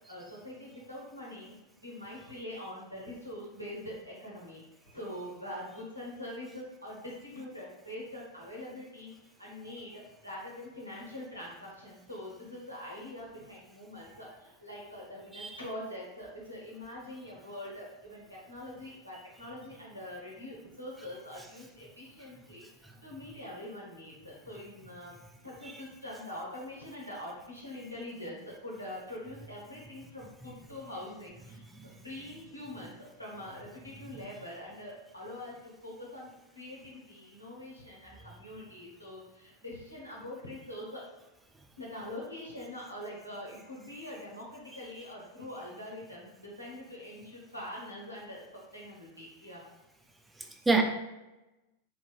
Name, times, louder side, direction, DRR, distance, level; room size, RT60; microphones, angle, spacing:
voice 1, 0.1-1.5 1.8-4.6 4.9-9.1 9.4-22.7 23.0-25.2 25.4-36.3 36.5-41.0 41.8-49.6, left 1 dB, 90° left, -5 dB, 0.9 m, -44 dB
voice 2, 50.4-50.8, right 4 dB, 5° right, 3 dB, 0.3 m, -29 dB
2.9 x 2.8 x 2.3 m, 1.0 s
figure-of-eight pair, 90°, 0 cm